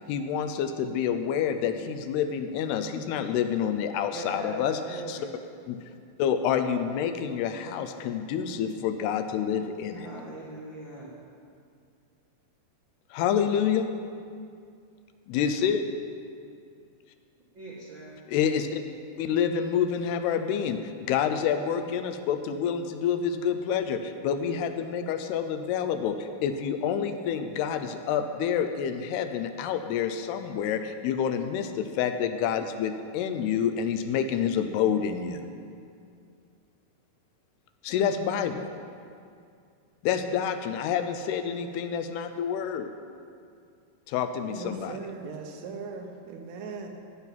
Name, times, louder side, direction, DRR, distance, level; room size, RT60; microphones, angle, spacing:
voice 1, 0.1-5.2 5.7-5.8 6.2-10.1 13.1-13.9 15.3-15.9 18.3-18.8 19.2-20.8 21.1-35.4 37.8-38.7 40.0-42.9 44.1-45.0, left 8 dB, 80° left, 8 dB, 2.7 m, -28 dB
voice 2, 4.0-4.6 4.9-5.3 9.9-11.1 17.5-18.1, right 2 dB, 60° right, -5 dB, 1.2 m, -40 dB
voice 3, 44.5-46.9, right 5 dB, 85° right, 3 dB, 3.4 m, -39 dB
16.0 x 5.9 x 9.1 m, 2.4 s
omnidirectional pair, 4.7 m